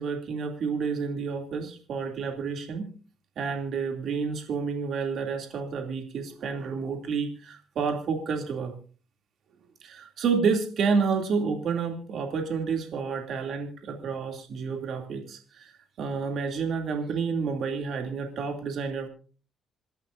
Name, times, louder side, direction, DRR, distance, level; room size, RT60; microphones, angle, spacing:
voice 1, 0.0-2.9 3.4-8.7 9.8-15.7 16.0-19.1, right 5 dB, 65° right, 3 dB, 2.7 m, -29 dB
27.5 x 11.5 x 2.6 m, 0.38 s
cardioid pair, 90°, 0 cm